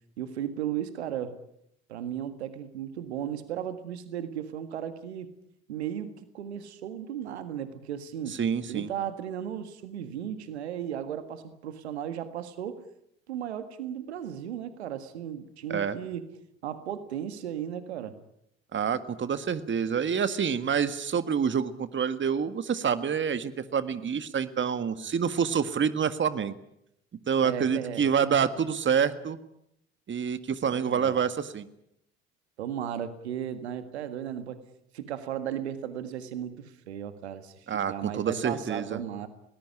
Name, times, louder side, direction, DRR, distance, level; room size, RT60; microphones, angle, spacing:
voice 1, 0.2-1.3 1.9-5.3 5.7-8.4 8.7-12.8 13.3-16.3 16.6-18.2 27.4-28.0 30.6-31.2 32.6-34.6 34.9-39.3, right 9 dB, 85° right, 11 dB, 1.8 m, -35 dB
voice 2, 8.3-8.9 15.7-16.0 18.7-26.5 27.3-29.4 30.1-31.7 37.7-39.0, right 7 dB, 35° right, 12 dB, 1.8 m, -27 dB
21.5 x 19.5 x 9.9 m, 0.76 s
hypercardioid pair, 55°, 32 cm